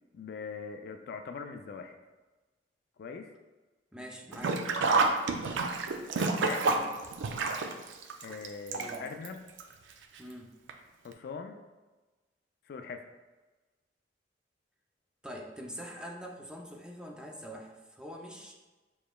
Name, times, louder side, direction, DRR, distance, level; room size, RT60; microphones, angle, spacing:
voice 1, 0.1-2.0 3.0-3.3 6.2-6.7 8.2-9.4 11.0-11.6 12.7-13.0, left 5 dB, 55° left, 7 dB, 0.3 m, -41 dB
voice 2, 3.9-4.6 6.6-6.9 8.7-9.1 10.2-10.5 15.2-18.5, equal, 5° right, 0 dB, 0.5 m, -44 dB
Sink (filling or washing), 4.3-9.3 9.6-9.7 10.7-10.8 11.1-11.2, right 3 dB, 85° right, 0.4 m, -29 dB
6.6 x 3.1 x 2.3 m, 1.2 s
head